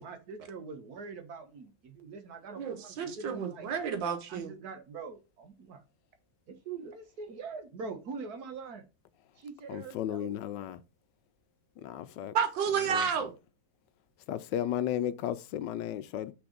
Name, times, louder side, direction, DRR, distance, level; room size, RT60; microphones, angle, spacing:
voice 1, 0.0-3.7 4.3-5.8 6.5-8.9 9.4-10.4, right 5 dB, 60° right, 1.5 m, -43 dB
voice 2, 2.6-4.5 12.3-13.3, right 7 dB, 85° right, 1.8 m, -31 dB
voice 3, 9.7-10.8 11.8-12.3 12.9-13.3 14.3-16.3, left 11 dB, 80° left, 1.2 m, -34 dB
6.0 x 3.9 x 5.0 m
omnidirectional pair, 2.0 m